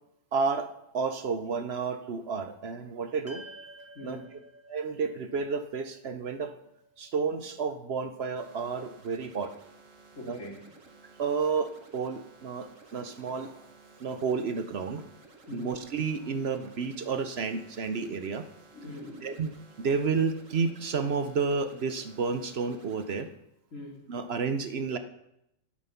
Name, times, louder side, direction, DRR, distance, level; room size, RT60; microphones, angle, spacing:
voice 1, 0.3-0.7 0.9-3.4 4.0-4.2 4.7-6.5 7.0-9.5 10.3-10.4 11.2-13.6 14.0-15.0 15.5-18.4 19.2-19.5 19.8-23.3 24.1-25.0, right 5 dB, 55° right, 9 dB, 0.9 m, -31 dB
sound 1, 3.3-7.7, right 2 dB, 10° right, 1.1 m, -51 dB
voice 2, 3.9-4.3 10.2-10.7 15.5-15.7 18.7-19.4 23.7-24.0, left 1 dB, 75° left, -1 dB, 3.1 m, -43 dB
sound 2, 8.3-23.2, right 3 dB, 75° right, 1.9 m, -55 dB
11.5 x 9.4 x 5.8 m, 0.81 s
omnidirectional pair, 1.4 m